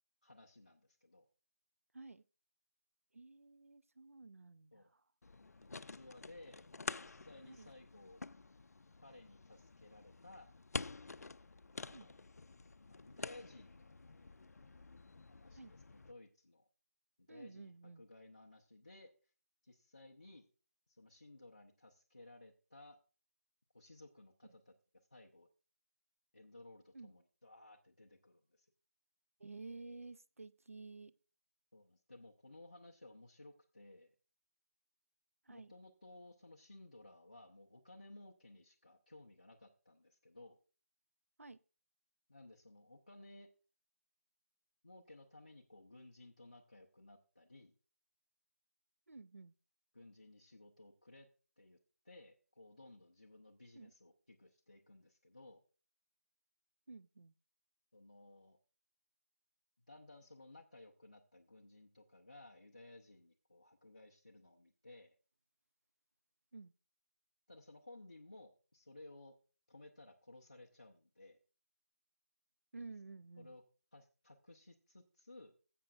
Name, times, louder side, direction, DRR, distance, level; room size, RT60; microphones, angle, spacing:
voice 1, 0.2-1.3 4.7-4.9 5.6-6.7 6.9-8.2 9.0-10.5 11.6-12.2 12.8-14.0 15.3-16.6 17.2-19.3 19.6-20.5 20.9-23.0 23.7-24.7 25.1-25.5 26.3-28.7 31.7-34.1 35.5-40.6 42.3-43.5 44.8-47.7 49.9-51.3 51.6-51.8 52.0-55.6 57.9-58.6 59.9-65.2 67.5-69.4 69.7-71.4 73.4-73.6 73.9-75.5, left 2 dB, 30° left, 0.6 m, -58 dB
voice 2, 3.1-5.0 7.4-7.7 11.9-12.1 15.5-15.7 17.3-18.0 26.9-27.1 29.4-31.1 35.5-35.7 41.4-41.6 49.1-49.5 53.7-53.9 56.9-57.3 66.5-66.7 72.7-73.6, right 3 dB, 65° right, 0.5 m, -52 dB
sound 1, 5.2-16.1, left 3 dB, 85° left, 0.4 m, -49 dB
16.5 x 7.6 x 2.4 m
figure-of-eight pair, 180°, 8 cm